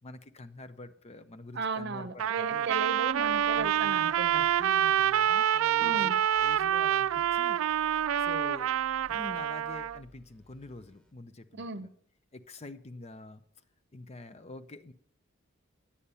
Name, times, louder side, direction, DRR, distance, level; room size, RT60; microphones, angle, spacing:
voice 1, 0.0-2.7 3.5-7.6 8.2-8.7 9.1-11.9 12.3-13.4 13.9-14.9, left 2 dB, 30° left, 11 dB, 0.5 m, -46 dB
voice 2, 1.5-4.4 5.8-6.1 11.6-11.9, right 4 dB, 55° right, 12 dB, 0.8 m, -35 dB
Trumpet, 2.2-10.0, right 10 dB, 80° right, 0.3 m, -27 dB
sound 1, 3.0-11.1, equal, 5° left, 1.2 m, -59 dB
9.9 x 8.5 x 5.5 m, 0.62 s
head